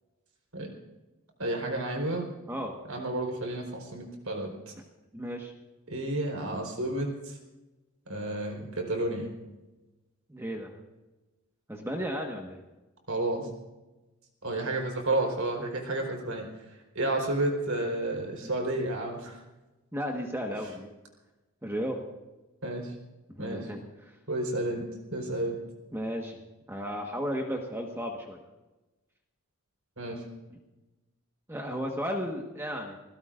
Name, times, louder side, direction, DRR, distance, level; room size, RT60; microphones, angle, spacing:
voice 1, 1.4-2.3 2.9-4.7 5.9-7.4 8.1-9.3 13.1-13.5 14.4-16.5 16.9-19.4 22.6-22.9 23.4-23.7 24.3-24.8 25.1-25.5 30.0-30.2, right 2 dB, 80° right, 1 dB, 4.3 m, -31 dB
voice 2, 5.1-5.5 10.3-10.7 11.7-12.6 18.4-18.5 19.9-20.9 21.6-22.0 23.3-24.1 25.9-26.4 26.7-28.4 31.5-33.0, equal, 10° right, 1 dB, 1.4 m, -34 dB
28.5 x 16.5 x 2.6 m, 1.1 s
head